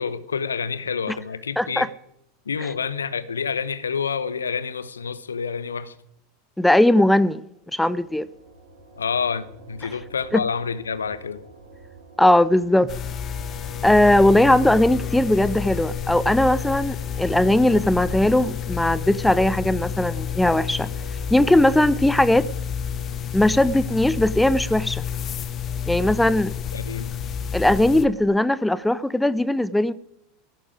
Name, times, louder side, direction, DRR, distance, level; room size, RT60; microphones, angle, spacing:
voice 1, 0.0-1.9 2.5-5.9 9.0-11.4 26.7-27.1, left 6 dB, 75° left, 0.9 m, -28 dB
voice 2, 1.6-1.9 6.6-7.4 7.7-8.3 10.3-10.4 12.2-12.9 13.8-20.9 21.3-22.5 23.3-25.0 25.9-26.5 27.5-29.9, left 1 dB, 5° left, 0.6 m, -19 dB
sound 1, 7.5-23.3, right 3 dB, 80° right, 5.5 m, -48 dB
sound 2, 12.9-28.0, left 8 dB, 35° left, 1.3 m, -30 dB
16.0 x 14.0 x 5.0 m
figure-of-eight pair, 80°, 0 cm